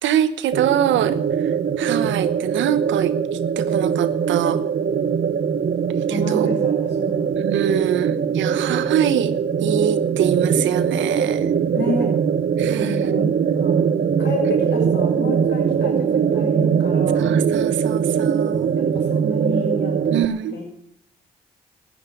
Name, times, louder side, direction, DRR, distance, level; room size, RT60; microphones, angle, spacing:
voice 1, 0.0-4.6 6.1-6.6 7.4-11.5 12.6-13.1 17.1-18.7 20.1-20.6, right 10 dB, 80° right, 14 dB, 1.1 m, -24 dB
sound 1, 0.5-20.2, right 7 dB, 55° right, 1.0 m, -21 dB
voice 2, 6.1-7.3 11.8-12.1 12.7-13.7 14.2-17.3 18.9-20.6, left 2 dB, 65° left, -1 dB, 5.9 m, -30 dB
13.5 x 9.8 x 9.5 m, 0.67 s
hypercardioid pair, 45°, 19 cm